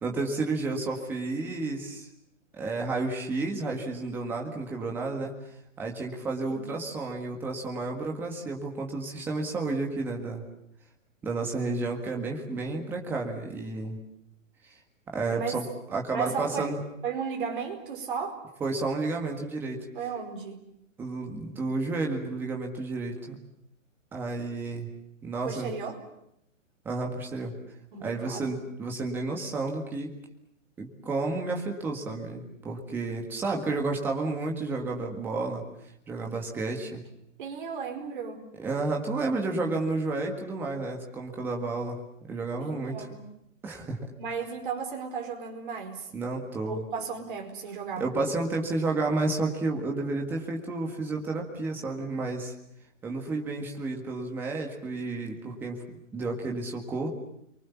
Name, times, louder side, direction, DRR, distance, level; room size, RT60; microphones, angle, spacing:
voice 1, 0.0-2.1 2.5-5.3 5.8-10.4 11.2-14.0 15.1-16.8 18.6-19.8 21.0-23.4 24.1-24.9 25.2-25.7 26.9-27.5 28.0-30.1 30.8-35.6 36.1-37.0 38.6-42.0 42.3-43.1 43.6-44.0 46.1-46.8 48.0-52.5 53.0-55.8 56.1-57.1, right 3 dB, 5° right, 1 dB, 1.8 m, -31 dB
voice 2, 15.3-15.6 16.1-16.7 17.0-18.4 19.9-20.6 25.4-26.0 27.9-28.6 37.4-38.5 42.6-43.3 44.2-46.1 46.6-48.1, right 6 dB, 40° right, 4 dB, 4.8 m, -35 dB
30.0 x 23.5 x 7.2 m, 0.77 s
hypercardioid pair, 175°, 39 cm